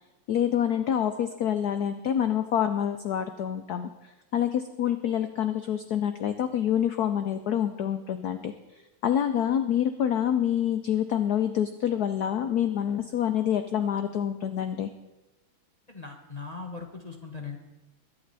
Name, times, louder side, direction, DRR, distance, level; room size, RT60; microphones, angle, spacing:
voice 1, 0.3-8.5 9.0-14.9, left 9 dB, 85° left, 9 dB, 0.8 m, -27 dB
voice 2, 15.9-17.6, left 4 dB, 30° left, 2 dB, 0.7 m, -39 dB
22.0 x 8.5 x 4.1 m, 1.1 s
omnidirectional pair, 2.4 m